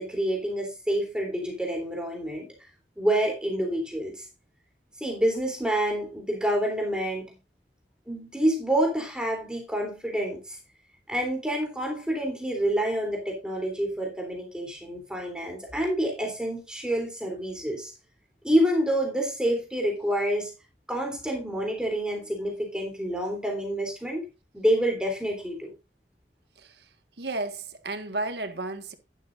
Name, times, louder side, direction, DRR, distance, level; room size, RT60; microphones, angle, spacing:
voice 1, 0.0-2.5 3.0-4.3 5.0-7.3 8.1-10.6 11.1-17.9 18.4-20.5 20.9-24.2 24.5-25.7, right 1 dB, 5° right, 3.3 m, -28 dB
voice 2, 27.2-28.9, right 2 dB, 75° right, 1.7 m, -33 dB
11.5 x 11.0 x 2.6 m
head